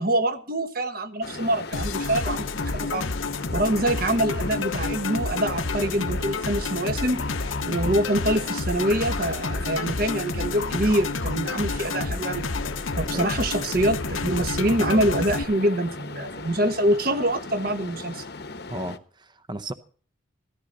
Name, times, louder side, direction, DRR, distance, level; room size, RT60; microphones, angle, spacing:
voice 1, 0.0-3.0 3.5-7.2 7.6-12.5 13.0-18.2, right 1 dB, 45° right, 1.3 m, -25 dB
sound 1, 1.2-19.0, left 3 dB, 55° left, 1.0 m, -38 dB
sound 2, 1.7-15.4, left 3 dB, 85° left, 1.0 m, -29 dB
voice 2, 18.7-19.7, right 1 dB, 20° right, 0.7 m, -34 dB
15.0 x 13.5 x 4.0 m
head